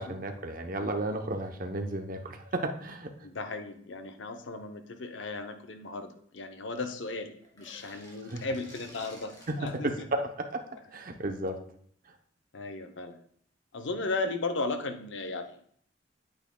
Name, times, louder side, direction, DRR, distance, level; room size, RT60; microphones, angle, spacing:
voice 1, 0.0-3.1 8.3-8.4 9.5-10.6 10.9-11.6, right 1 dB, 50° right, 5 dB, 0.8 m, -33 dB
voice 2, 3.2-9.4 9.6-10.1 12.5-13.2 13.7-15.6, left 3 dB, 85° left, 7 dB, 0.7 m, -36 dB
sound 1, 7.4-9.8, equal, 20° left, 2.6 m, -52 dB
8.8 x 8.3 x 2.3 m, 0.63 s
head